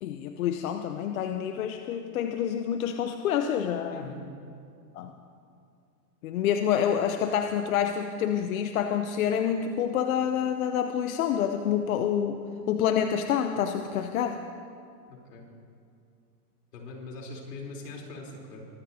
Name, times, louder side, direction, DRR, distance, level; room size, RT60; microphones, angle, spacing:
voice 1, 0.0-4.0 4.9-5.2 6.2-14.4, left 9 dB, 60° left, 6 dB, 0.8 m, -27 dB
voice 2, 3.9-4.2 15.1-15.5 16.7-18.6, left 3 dB, 80° left, -1 dB, 3.8 m, -41 dB
23.0 x 13.5 x 2.8 m, 2.4 s
supercardioid pair, 160°, 48 cm